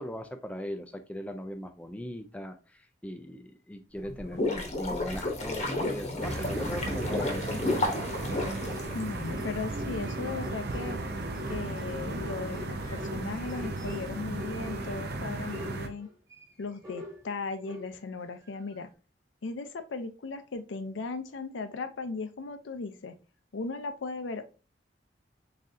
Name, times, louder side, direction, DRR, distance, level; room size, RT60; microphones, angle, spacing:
voice 1, 0.0-8.0, equal, 5° left, 7 dB, 0.3 m, -39 dB
sound 1, 4.0-9.4, left 2 dB, 40° left, 0.9 m, -32 dB
sound 2, 6.2-15.9, right 2 dB, 60° right, 0.6 m, -35 dB
sound 3, 7.5-15.1 15.5-18.2 18.7-18.8, equal, 15° right, 1.4 m, -43 dB
voice 2, 8.9-11.0 11.5-16.1 16.6-18.9 19.4-23.1 23.5-24.4, left 4 dB, 85° left, 9 dB, 0.5 m, -37 dB
4.0 x 3.6 x 2.6 m, 0.32 s
head